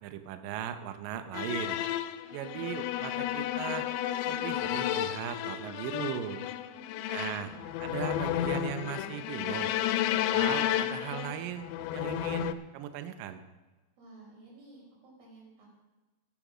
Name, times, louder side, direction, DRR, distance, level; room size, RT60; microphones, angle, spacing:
voice 1, 0.0-1.8 2.3-3.9 4.3-6.4 7.1-7.5 7.8-9.7 10.1-13.4, right 9 dB, 90° right, 9 dB, 1.9 m, -38 dB
sound 1, 1.3-12.5, left 12 dB, 80° left, 2.7 m, -32 dB
voice 2, 6.7-7.7 14.0-15.7, right 2 dB, 60° right, -4 dB, 7.1 m, -54 dB
14.5 x 8.9 x 6.2 m, 1.2 s
omnidirectional pair, 5.3 m